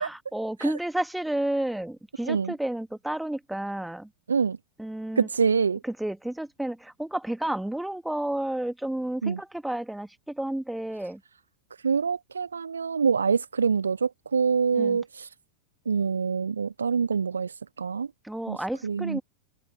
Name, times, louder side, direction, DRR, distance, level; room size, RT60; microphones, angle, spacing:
voice 1, 0.0-4.1 4.8-5.3 5.8-11.2 14.7-15.0 18.2-19.2, right 1 dB, 5° right, 1.9 m, -31 dB
voice 2, 5.2-5.8 9.2-9.4 11.8-15.3 15.9-17.5 17.8-18.1 18.5-18.6 18.8-19.2, right 6 dB, 75° right, 0.3 m, -25 dB
figure-of-eight pair, 90°, 0 cm